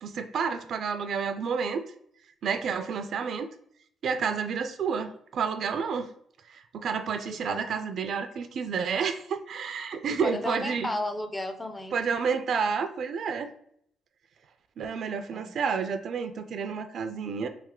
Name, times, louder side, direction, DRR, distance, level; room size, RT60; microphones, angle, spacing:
voice 1, 0.0-1.8 2.4-3.5 4.0-6.1 6.5-10.9 11.9-13.5 14.8-17.5, right 6 dB, 65° right, 9 dB, 0.4 m, -30 dB
voice 2, 7.3-7.6 10.1-12.0 15.3-15.5, left 1 dB, 15° left, 7 dB, 0.5 m, -34 dB
3.3 x 2.9 x 3.6 m, 0.69 s
cardioid pair, 90°, 0 cm